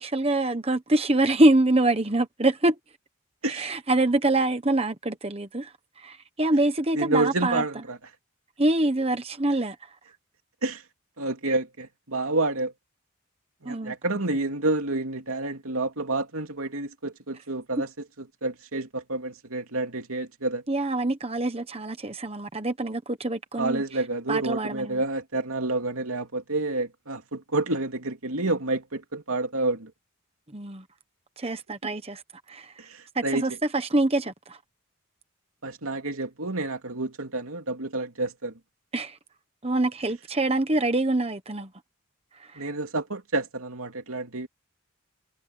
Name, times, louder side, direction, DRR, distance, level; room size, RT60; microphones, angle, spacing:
voice 1, 0.0-2.8 3.5-7.6 8.6-9.9 13.6-14.5 20.7-23.8 24.3-25.0 30.5-30.8 31.4-32.2 32.5-32.7 33.1-34.6 38.9-39.2 39.6-41.7 42.3-42.7, right 2 dB, 25° right, 1.1 m, -25 dB
voice 2, 6.9-8.0 10.6-10.8 11.2-12.7 13.6-17.9 18.2-20.6 23.6-29.9 32.8-33.4 35.6-38.5 42.6-44.5, right 2 dB, 75° right, 2.9 m, -29 dB
head